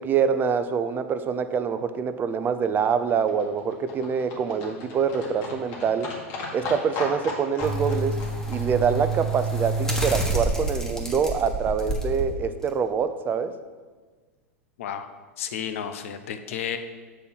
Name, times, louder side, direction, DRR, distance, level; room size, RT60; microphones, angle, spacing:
voice 1, 0.0-6.1 6.5-8.2 8.5-13.6, right 6 dB, 25° right, 10 dB, 0.5 m, -25 dB
Livestock farm animals working animals, 2.2-10.4 10.6-10.7 11.0-11.1 11.3-11.4 11.6-11.7 11.9-12.0 12.2-12.3 12.5-12.6 12.8-12.9, left 2 dB, 50° left, 2.0 m, -38 dB
sound 1, 7.6-12.2 12.7-12.8, right 2 dB, 5° left, 1.3 m, -27 dB
voice 2, 15.4-16.8, left 8 dB, 70° left, 9 dB, 0.7 m, -32 dB
6.8 x 4.4 x 5.4 m, 1.4 s
hypercardioid pair, 105°, 8 cm